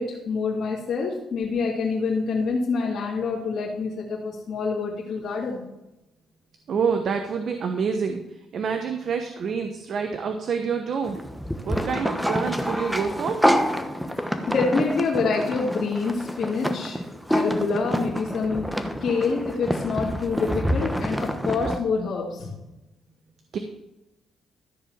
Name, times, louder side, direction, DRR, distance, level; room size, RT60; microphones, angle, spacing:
voice 1, 0.0-5.6 14.2-17.0 17.3-22.6, left 4 dB, 60° left, -6 dB, 2.9 m, -26 dB
voice 2, 6.7-8.2 8.5-11.2 11.6-13.4 23.5-23.6, right 6 dB, 60° right, 5 dB, 1.1 m, -27 dB
sound 1, 11.0-21.8, equal, ahead, 1.0 m, -27 dB
14.0 x 4.8 x 7.2 m, 0.95 s
cardioid pair, 90°, 0 cm